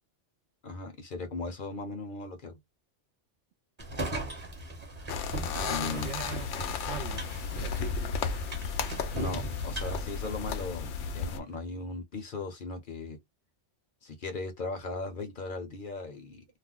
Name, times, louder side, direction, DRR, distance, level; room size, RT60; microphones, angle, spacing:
voice 1, 0.6-2.6 5.7-6.1 9.1-13.2 14.0-16.4, left 3 dB, 50° left, 0.8 m, -38 dB
sound 1, 3.8-11.0, right 1 dB, 25° right, 0.9 m, -39 dB
sound 2, 5.1-11.4, left 5 dB, 80° left, 0.9 m, -34 dB
voice 2, 5.6-7.2 7.5-8.2, right 10 dB, 70° right, 0.8 m, -42 dB
2.4 x 2.1 x 3.6 m
omnidirectional pair, 1.2 m